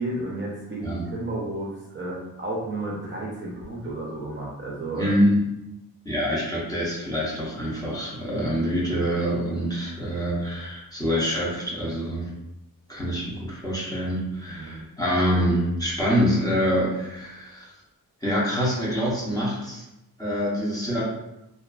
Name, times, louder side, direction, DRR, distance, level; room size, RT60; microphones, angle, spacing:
voice 1, 0.0-5.2 14.5-14.8, right 2 dB, 35° right, -4 dB, 0.5 m, -32 dB
voice 2, 5.0-5.4 6.0-12.3 12.9-17.7 18.2-19.8 20.2-21.0, equal, 10° left, -7 dB, 0.6 m, -25 dB
2.4 x 2.3 x 2.3 m, 0.90 s
wide cardioid pair, 145°, 36 cm